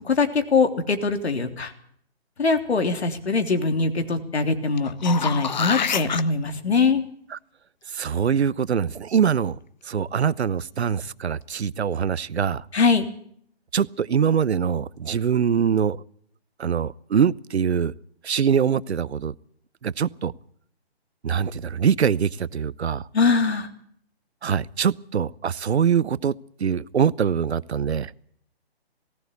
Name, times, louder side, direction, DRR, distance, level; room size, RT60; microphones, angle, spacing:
voice 1, 0.2-1.7 2.4-7.0 12.7-13.1 23.1-23.7, left 4 dB, 85° left, 7 dB, 3.4 m, -22 dB
sound 1, 4.8-6.2 11.0-11.1, left 6 dB, 45° left, 0.9 m, -26 dB
voice 2, 7.9-9.6 9.8-12.6 13.7-16.0 16.6-17.9 18.2-19.3 19.8-20.3 21.2-23.0 24.4-26.3 26.6-28.1, right 7 dB, 85° right, 20 dB, 0.9 m, -23 dB
19.0 x 17.5 x 8.2 m, 0.64 s
hypercardioid pair, 175°, 32 cm